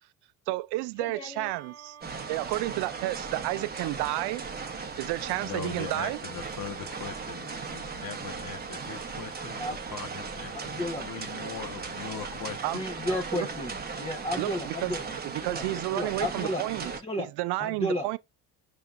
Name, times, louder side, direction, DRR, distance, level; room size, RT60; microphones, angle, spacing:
voice 1, 0.5-2.0 2.3-4.4 5.0-6.2 12.6-12.8 13.1-13.5 14.4-14.9 15.2-16.9 17.2-18.2, right 18 dB, 65° right, 0.5 m, -31 dB
voice 2, 1.0-1.5 9.6-9.8 10.5-11.1 12.7-15.1 15.5-15.6 15.9-17.3 17.6-18.2, left 1 dB, 15° left, 0.8 m, -33 dB
sound 1, 1.4-6.9, right 7 dB, 40° right, 1.3 m, -53 dB
sound 2, 2.0-17.0, right 5 dB, 20° right, 0.9 m, -37 dB
voice 3, 5.4-12.8, left 7 dB, 50° left, 1.2 m, -41 dB
5.6 x 3.4 x 2.4 m
supercardioid pair, 75°, 43 cm